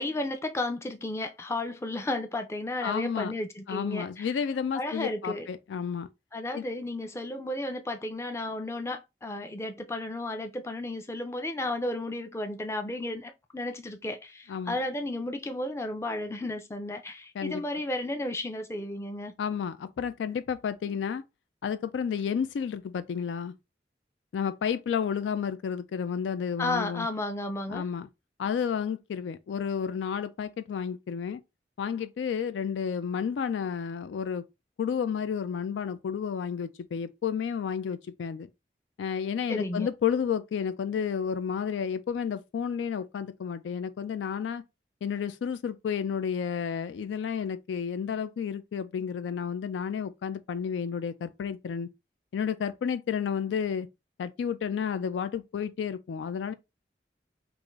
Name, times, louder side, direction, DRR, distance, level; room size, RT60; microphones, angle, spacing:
voice 1, 0.0-4.3 4.7-5.5 6.3-19.3 26.6-27.8 39.5-39.9, left 1 dB, 15° left, 0.4 m, -33 dB
voice 2, 2.8-3.3 3.7-6.1 6.5-6.6 14.5-14.8 17.4-17.6 19.4-21.2 21.6-23.5 24.3-27.1 27.7-28.1 28.4-31.4 31.8-34.4 34.8-38.5 39.0-44.6 45.0-51.9 52.3-53.9 54.2-56.5, left 7 dB, 90° left, 0.3 m, -31 dB
3.5 x 2.5 x 3.1 m
head